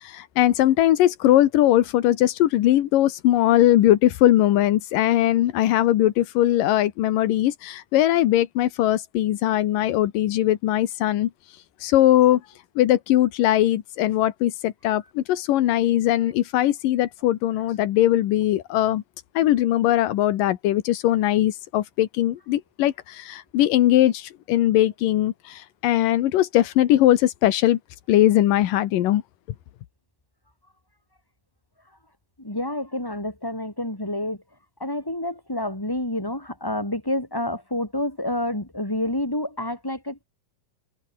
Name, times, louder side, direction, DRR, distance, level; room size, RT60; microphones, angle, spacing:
voice 1, 0.0-11.3 11.8-12.4 12.8-19.0 19.4-27.8 28.1-29.2, left 13 dB, 85° left, 2.9 m, -20 dB
voice 2, 32.4-34.4 34.8-40.2, left 1 dB, 5° left, 4.0 m, -28 dB
omnidirectional pair, 3.8 m